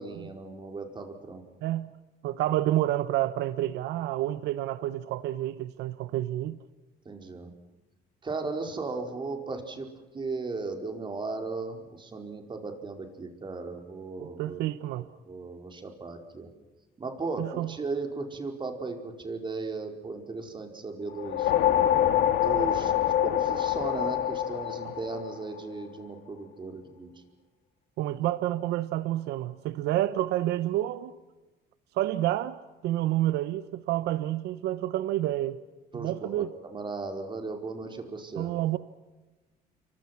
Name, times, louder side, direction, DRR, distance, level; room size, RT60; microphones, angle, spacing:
voice 1, 0.0-1.4 7.0-7.5 8.2-9.9 10.1-14.6 15.2-16.5 17.0-21.5 22.4-22.9 23.2-27.1 35.9-38.5, right 3 dB, 30° right, 4.7 m, -36 dB
voice 2, 1.6-1.9 2.2-6.6 14.2-15.1 17.4-17.7 28.0-31.1 31.9-32.6 32.8-35.6 35.9-36.5 38.3-38.8, right 14 dB, 85° right, 1.0 m, -29 dB
sound 1, 21.1-25.7, left 11 dB, 75° left, 2.9 m, -25 dB
28.5 x 24.5 x 6.0 m
cardioid pair, 110°, 17 cm